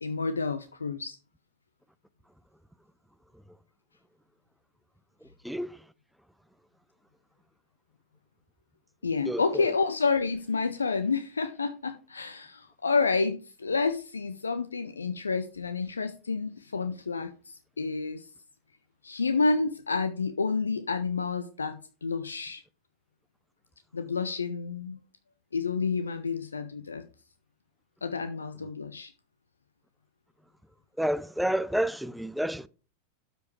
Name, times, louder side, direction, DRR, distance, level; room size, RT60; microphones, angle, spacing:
voice 1, 0.0-1.2 9.0-18.3 19.0-22.6 23.9-25.0 25.5-27.0 28.0-29.1, left 4 dB, 75° left, 0.5 m, -29 dB
voice 2, 5.4-5.8 9.3-9.7 31.0-32.7, right 1 dB, ahead, 0.3 m, -29 dB
12.5 x 5.1 x 3.2 m
figure-of-eight pair, 90°, 0 cm